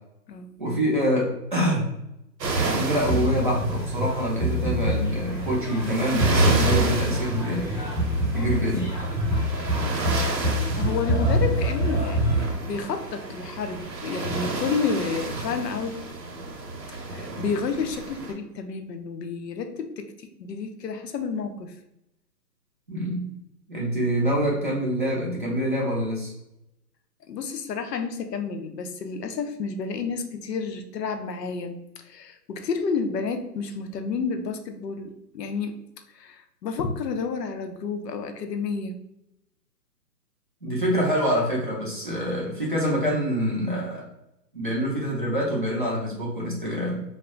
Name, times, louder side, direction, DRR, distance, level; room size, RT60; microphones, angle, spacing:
voice 1, 0.6-1.9 2.7-7.9 8.3-9.0 22.9-23.3 23.7-26.3 40.6-44.1 44.5-47.0, equal, 35° right, -4 dB, 0.4 m, -26 dB
sound 1, 2.4-18.3, right 3 dB, 70° right, 0.9 m, -31 dB
sound 2, 3.0-12.5, equal, 15° left, 0.9 m, -26 dB
voice 2, 10.8-16.0 17.1-21.7 27.3-35.8 36.1-39.0, left 5 dB, 75° left, 7 dB, 0.6 m, -30 dB
2.2 x 2.1 x 3.6 m, 0.86 s
hypercardioid pair, 155°, 50 cm